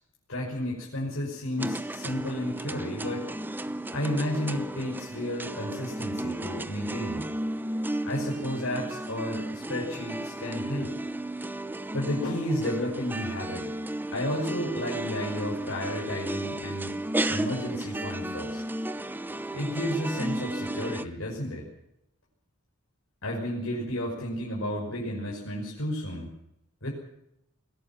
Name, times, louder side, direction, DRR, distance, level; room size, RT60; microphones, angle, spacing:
voice 1, 0.3-3.3 3.9-7.3 8.0-10.9 11.9-13.7 14.1-16.9 17.3-18.6 19.5-21.7 23.2-26.3 26.8-26.9, left 1 dB, 65° left, -3 dB, 5.8 m, -32 dB
sound 1, 1.6-21.0, right 1 dB, 10° right, 0.8 m, -34 dB
21.5 x 17.0 x 7.4 m, 0.80 s
head